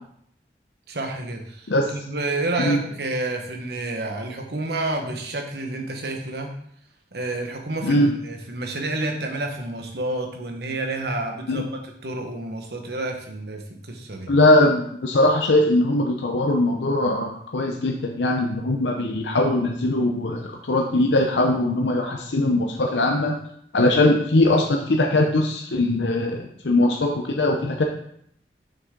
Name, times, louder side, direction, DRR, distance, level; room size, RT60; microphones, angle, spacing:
voice 1, 0.9-6.5 7.1-11.7 12.0-14.3, right 2 dB, 65° right, 3 dB, 1.2 m, -29 dB
voice 2, 14.3-23.4 23.7-27.8, left 1 dB, 90° left, 2 dB, 0.7 m, -21 dB
6.8 x 6.1 x 3.7 m, 0.69 s
head